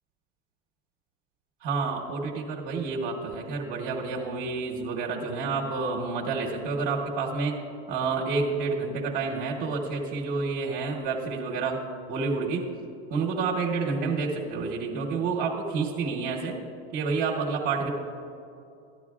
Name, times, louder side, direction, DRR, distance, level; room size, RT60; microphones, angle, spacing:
voice 1, 1.6-7.6 7.9-12.7 13.1-16.6 16.9-17.9, right 4 dB, 35° right, -2 dB, 1.0 m, -29 dB
13.5 x 10.5 x 2.4 m, 2.6 s
supercardioid pair, 155°, 30 cm